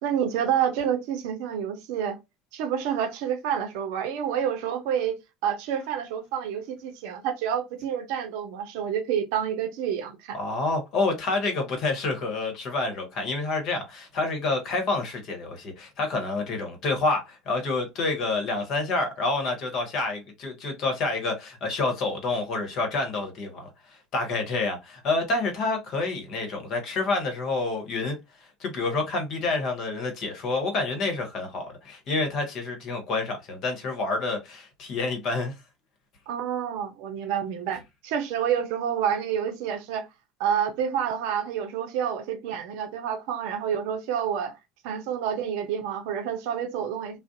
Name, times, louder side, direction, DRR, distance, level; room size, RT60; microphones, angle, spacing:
voice 1, 0.0-2.2 2.5-10.4 36.3-40.1 40.4-44.6 44.8-47.2, right 8 dB, 70° right, 0.5 m, -28 dB
voice 2, 10.3-28.2 28.6-35.5, left 3 dB, 55° left, 1.0 m, -28 dB
2.5 x 2.0 x 2.4 m
hypercardioid pair, 75°, 0 cm